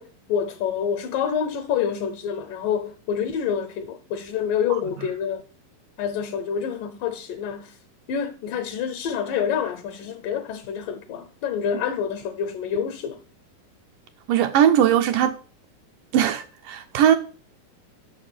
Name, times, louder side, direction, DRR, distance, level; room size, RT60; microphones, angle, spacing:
voice 1, 0.0-5.4 6.0-7.8 8.1-13.2, left 7 dB, 75° left, 2.3 m, -27 dB
voice 2, 14.3-15.4 16.1-17.2, right 10 dB, 75° right, 2.1 m, -19 dB
6.7 x 6.6 x 7.3 m
omnidirectional pair, 4.2 m